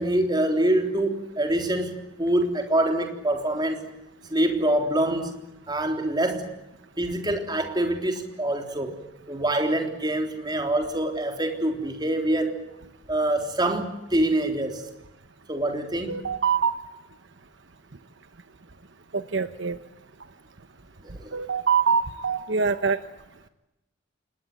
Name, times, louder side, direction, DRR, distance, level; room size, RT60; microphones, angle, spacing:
voice 1, 0.0-3.9 4.3-6.5 7.0-9.0 9.3-12.6 13.1-14.8 15.5-16.2 21.2-21.4, right 1 dB, 20° right, 4 dB, 3.6 m, -25 dB
voice 2, 16.1-16.8 19.1-19.8 21.3-23.0, right 6 dB, 60° right, 11 dB, 1.0 m, -24 dB
28.0 x 20.5 x 9.1 m, 0.94 s
head